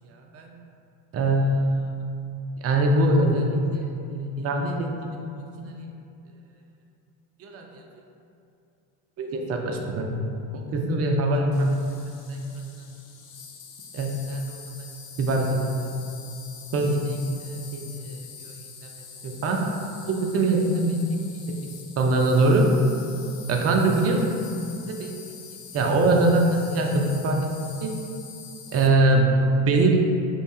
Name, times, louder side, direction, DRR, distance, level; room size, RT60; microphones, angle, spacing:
voice 1, 0.0-0.6 1.1-1.8 2.6-5.2 5.6-5.8 7.4-7.8 9.2-10.1 10.5-11.9 12.3-12.4 13.9-14.6 15.2-15.9 16.7-18.6 18.8-18.9 19.2-19.7 20.0-21.0 21.5-21.7 22.0-22.7 23.5-24.4 24.9-25.1 25.7-27.5 27.8-28.0 28.7-29.3 29.7-30.0, right 2 dB, 30° right, 2 dB, 0.5 m, -23 dB
Insect, 11.5-28.9, left 6 dB, 80° left, 0.6 m, -44 dB
3.1 x 2.2 x 4.1 m, 2.6 s
hypercardioid pair, 75°, 49 cm